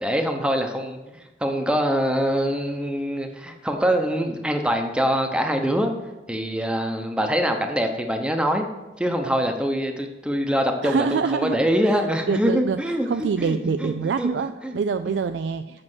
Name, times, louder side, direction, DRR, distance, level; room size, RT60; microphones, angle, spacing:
voice 1, 0.0-5.9 6.3-8.6 9.0-14.3 14.6-14.7 15.1-15.2, equal, 5° right, 4 dB, 0.8 m, -24 dB
voice 2, 10.8-12.0 12.3-12.8 13.1-15.8, right 5 dB, 75° right, 9 dB, 0.3 m, -25 dB
7.6 x 5.9 x 6.1 m, 1.1 s
head